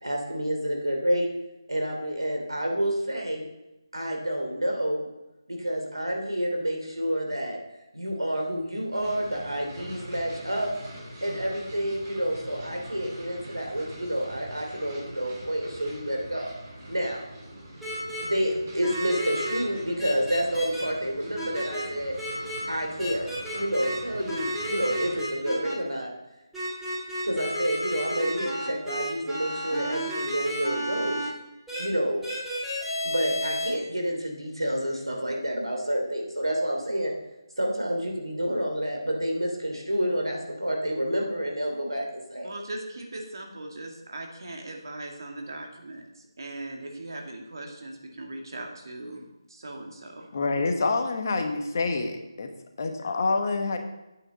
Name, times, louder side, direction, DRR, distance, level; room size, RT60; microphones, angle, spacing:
voice 1, 0.0-1.3 1.7-3.5 3.9-5.1 5.5-7.6 7.9-10.7 11.2-16.5 16.9-17.3 18.1-22.1 22.7-23.3 23.5-26.1 27.2-31.3 31.8-32.2 33.0-37.1 37.6-42.5, equal, 90° right, 1 dB, 2.9 m, -29 dB
sound 1, 8.9-25.2, right 1 dB, 30° right, 3.4 m, -44 dB
sound 2, 17.8-18.2 18.8-19.6 20.0-20.8 21.3-21.8 22.2-22.6 23.0-24.0 24.3-25.7 26.5-31.3 31.7-31.8 32.2-33.7, equal, 5° right, 2.6 m, -32 dB
voice 2, 42.4-50.2, right 2 dB, 55° right, 1 dB, 2.1 m, -39 dB
voice 3, 50.3-52.5 52.8-53.8, left 3 dB, 40° left, 5 dB, 1.1 m, -27 dB
9.0 x 8.9 x 4.1 m, 0.98 s
figure-of-eight pair, 155°, 3 cm